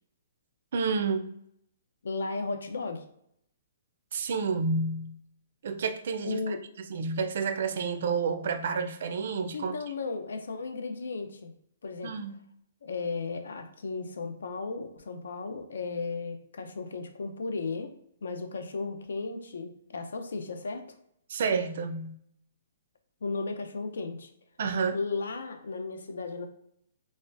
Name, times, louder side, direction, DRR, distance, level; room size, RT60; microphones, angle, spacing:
voice 1, 0.7-1.3 4.1-5.2 5.6-9.7 12.0-12.4 21.3-22.2 24.6-25.0, right 5 dB, 55° right, 0.4 m, -30 dB
voice 2, 2.0-3.0 6.2-6.6 9.5-11.5 11.8-12.1 12.8-17.9 18.2-20.8 23.2-24.3 24.9-26.5, left 4 dB, 90° left, 0.6 m, -35 dB
4.1 x 2.4 x 2.5 m
hypercardioid pair, 170°, 0 cm